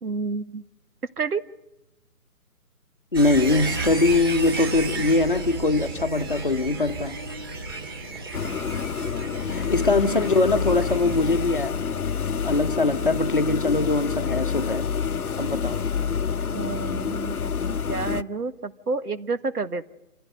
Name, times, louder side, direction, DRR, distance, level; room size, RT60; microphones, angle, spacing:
voice 1, 0.0-0.6 1.2-1.4 5.0-5.1 10.0-10.3 16.5-19.9, right 4 dB, 85° right, 1.7 m, -30 dB
voice 2, 3.1-7.2 9.5-11.8 12.4-14.9 15.4-15.8, left 3 dB, 35° left, 1.0 m, -22 dB
sound 1, 3.1-14.0 14.2-14.3, right 3 dB, 15° right, 2.3 m, -34 dB
Boom, 4.4-14.0, right 2 dB, 45° right, 3.6 m, -46 dB
sound 2, 8.3-18.2, left 6 dB, 70° left, 0.9 m, -28 dB
27.5 x 15.5 x 9.1 m
hypercardioid pair, 175°, 45 cm